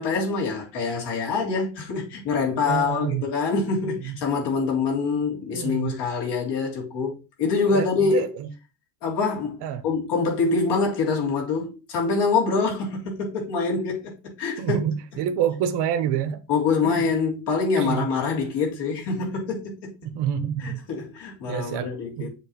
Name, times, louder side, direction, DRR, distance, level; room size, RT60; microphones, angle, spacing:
voice 1, 0.0-8.3 9.0-14.8 16.5-19.9 20.6-22.3, left 4 dB, 60° left, 3.4 m, -25 dB
voice 2, 2.6-3.2 3.8-4.1 5.5-5.9 7.7-8.5 9.6-9.8 14.6-16.4 16.8-17.0 17.8-18.1 20.0-20.8 21.5-22.3, right 9 dB, 60° right, 1.0 m, -27 dB
7.3 x 3.4 x 5.8 m
cardioid pair, 175°, 46 cm